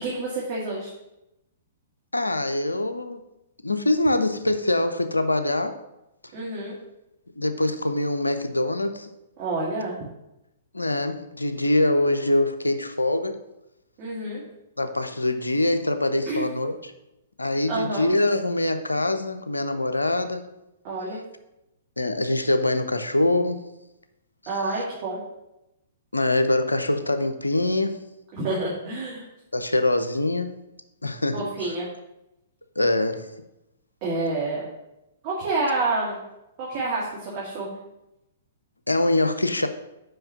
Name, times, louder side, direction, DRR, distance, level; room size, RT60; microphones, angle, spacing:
voice 1, 0.0-0.9 6.3-6.8 9.4-10.0 14.0-14.4 16.3-16.5 17.7-18.1 20.8-21.2 24.5-25.2 28.3-29.2 31.3-31.9 34.0-34.7 35.2-36.2 36.6-37.7, right 2 dB, 40° right, -6 dB, 2.1 m, -28 dB
voice 2, 2.1-3.2 3.6-5.8 7.3-9.1 10.7-13.4 14.8-16.9 17.4-20.5 22.0-23.7 26.1-28.1 29.5-30.5 31.0-31.5 32.8-33.3 38.9-39.7, left 1 dB, 85° left, 9 dB, 0.7 m, -24 dB
5.7 x 5.3 x 6.7 m, 0.90 s
figure-of-eight pair, 115°, 0 cm